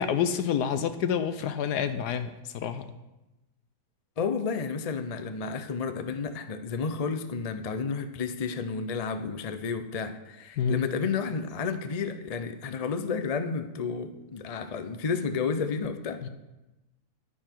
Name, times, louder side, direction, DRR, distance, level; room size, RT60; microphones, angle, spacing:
voice 1, 0.0-2.9 10.6-10.8 16.2-16.3, left 7 dB, 80° left, 10 dB, 1.3 m, -28 dB
voice 2, 4.2-16.3, left 5 dB, 50° left, 9 dB, 0.4 m, -31 dB
11.0 x 10.0 x 4.6 m, 1.0 s
omnidirectional pair, 1.7 m